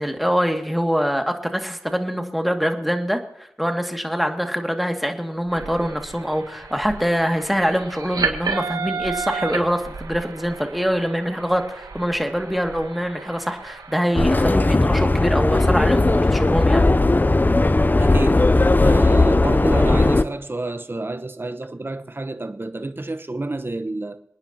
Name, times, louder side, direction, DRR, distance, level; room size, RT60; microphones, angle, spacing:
voice 1, 0.0-16.8, equal, ahead, 2.2 m, -24 dB
sound 1, 5.5-14.2, right 5 dB, 80° right, 2.0 m, -32 dB
Subway metro underground, 14.1-20.2, left 2 dB, 25° left, 0.6 m, -17 dB
voice 2, 18.0-24.2, right 2 dB, 35° right, 1.0 m, -29 dB
28.0 x 9.8 x 2.9 m
cardioid pair, 45°, 7 cm